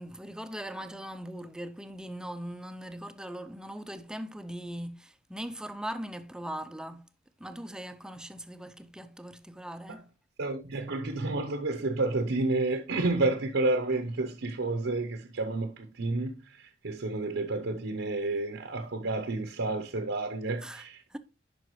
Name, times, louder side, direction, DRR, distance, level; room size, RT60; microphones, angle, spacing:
voice 1, 0.0-7.1 7.4-10.0 20.6-20.8 21.1-21.2, equal, 5° right, 0.5 m, -40 dB
voice 2, 10.4-21.2, right 2 dB, 75° right, 0.8 m, -30 dB
11.0 x 4.9 x 3.1 m
head